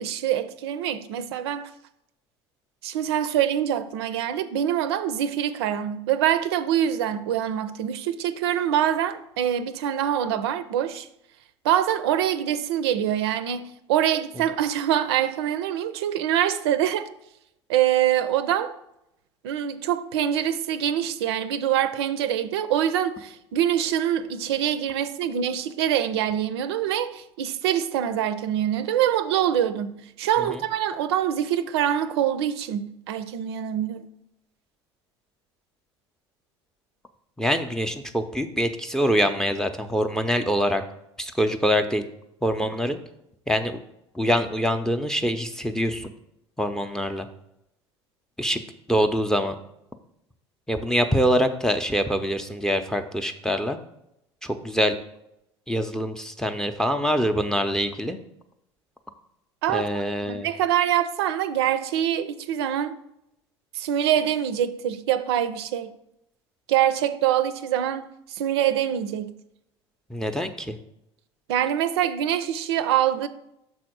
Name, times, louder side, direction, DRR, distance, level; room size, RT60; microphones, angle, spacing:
voice 1, 0.0-1.7 2.8-11.1 11.6-17.1 17.7-18.7 19.4-34.1 59.6-59.9 60.3-63.0 63.7-65.9 66.7-69.4 71.5-73.3, right 10 dB, 60° right, 0.5 m, -24 dB
voice 2, 37.4-40.8 41.2-42.0 42.4-43.0 43.5-43.8 44.1-46.1 46.6-47.3 48.4-48.6 48.9-49.6 50.7-53.8 54.4-55.0 55.7-58.2 59.7-60.5 70.1-70.8, equal, 5° left, 0.6 m, -24 dB
6.3 x 4.2 x 6.1 m
figure-of-eight pair, 65°, 15 cm